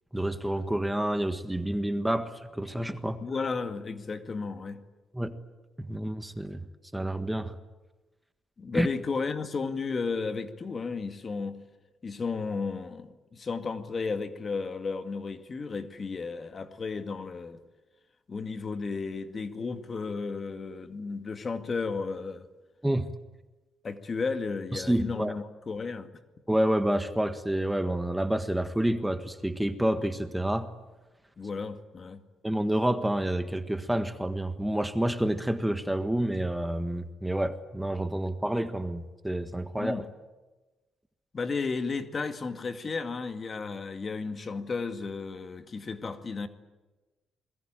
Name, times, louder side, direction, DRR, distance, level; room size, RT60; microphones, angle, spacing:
voice 1, 0.1-3.2 5.1-5.4 5.8-6.6 6.9-7.6 8.7-8.9 22.8-23.1 24.7-25.3 26.5-30.7 32.4-40.1, right 1 dB, 5° right, 9 dB, 1.5 m, -28 dB
voice 2, 3.2-4.8 8.6-11.6 12.0-17.6 18.3-22.5 23.8-26.1 31.4-32.2 39.8-40.1 41.3-46.5, left 4 dB, 40° left, 8 dB, 2.1 m, -33 dB
28.0 x 21.5 x 9.0 m, 1.2 s
cardioid pair, 90°, 0 cm